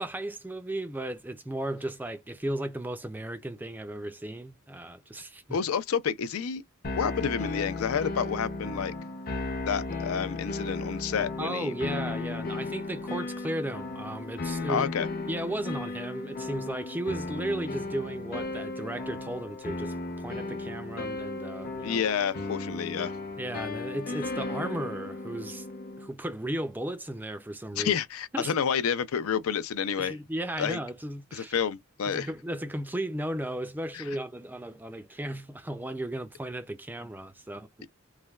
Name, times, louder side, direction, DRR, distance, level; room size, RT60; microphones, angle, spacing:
voice 1, 0.0-5.6 11.4-14.9 15.3-22.0 23.4-25.7 26.0-28.0 28.3-28.6 30.0-31.6 32.1-37.9, right 1 dB, 10° right, 0.4 m, -35 dB
voice 2, 5.5-6.6 7.0-8.9 9.6-11.7 14.7-15.1 21.8-23.1 27.8-30.2 30.6-30.8 31.3-32.3 33.9-34.0, left 7 dB, 85° left, 0.5 m, -29 dB
sound 1, 6.8-26.1, left 2 dB, 45° left, 0.6 m, -35 dB
3.2 x 2.2 x 2.3 m
head